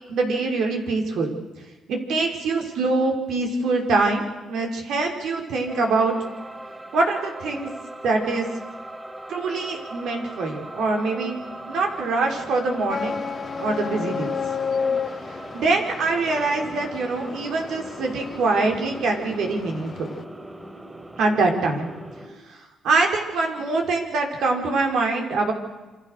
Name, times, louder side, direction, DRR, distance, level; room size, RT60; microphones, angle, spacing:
voice 1, 0.1-1.3 1.9-6.2 6.9-7.7 8.0-8.5 9.3-13.2 13.6-14.3 15.5-20.1 21.2-21.9 22.5-22.6 22.8-25.5, right 3 dB, 75° right, 2 dB, 5.5 m, -24 dB
sound 1, 5.7-22.3, right 1 dB, 15° right, 6.4 m, -39 dB
sound 2, 12.9-20.2, left 6 dB, 45° left, 1.2 m, -32 dB
28.0 x 26.0 x 6.8 m, 1.2 s
cardioid pair, 90°, 0 cm